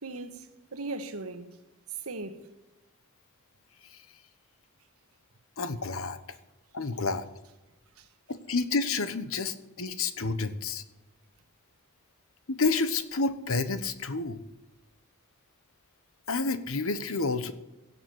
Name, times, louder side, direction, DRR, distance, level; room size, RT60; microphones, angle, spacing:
voice 1, 0.0-1.5 1.9-2.5 8.0-8.1, right 3 dB, 80° right, 1.5 m, -38 dB
voice 2, 5.6-6.2 6.7-7.3 8.3-10.8 12.5-14.4 16.3-17.5, left 3 dB, 65° left, 1.2 m, -29 dB
17.0 x 7.3 x 8.6 m
head